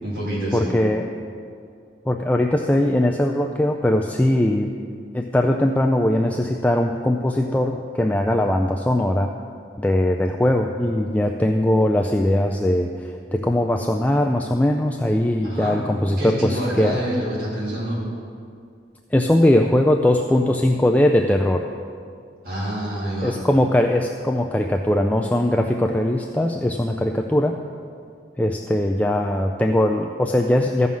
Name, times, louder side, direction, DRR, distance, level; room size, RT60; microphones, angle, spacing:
voice 1, 0.0-0.7 15.4-15.8 16.2-18.0 22.4-23.3, equal, 55° right, -9 dB, 3.1 m, -27 dB
voice 2, 0.5-1.1 2.1-4.7 5.1-9.3 9.8-17.0 19.1-21.7 23.2-27.6 28.4-30.9, left 1 dB, 10° left, 2 dB, 0.3 m, -20 dB
14.5 x 5.5 x 6.2 m, 2.3 s
head